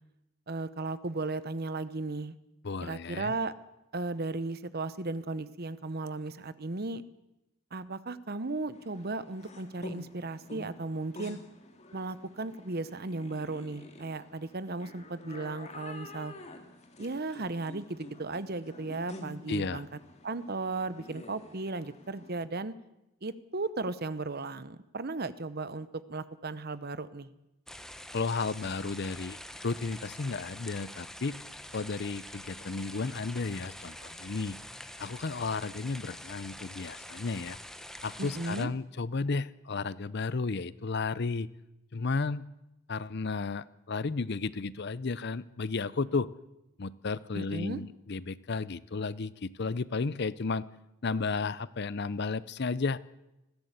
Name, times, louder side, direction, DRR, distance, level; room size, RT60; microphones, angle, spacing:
voice 1, 0.5-2.4 2.8-3.5 3.9-7.0 7.7-11.4 11.9-16.3 17.0-19.9 20.2-22.7 23.2-27.3 38.2-38.7 47.3-47.8, right 3 dB, 45° right, 15 dB, 0.9 m, -35 dB
voice 2, 2.6-3.3 19.5-19.8 28.1-29.4 29.6-31.4 31.7-34.6 35.0-37.6 38.0-41.5 41.9-42.4 42.9-46.3 46.8-50.6 51.0-53.0, left 4 dB, 50° left, 18 dB, 0.6 m, -33 dB
sound 1, 8.7-22.5, left 1 dB, 30° left, 2.2 m, -48 dB
sound 2, 27.7-38.7, left 1 dB, ahead, 0.8 m, -46 dB
20.5 x 15.5 x 8.2 m, 0.94 s
head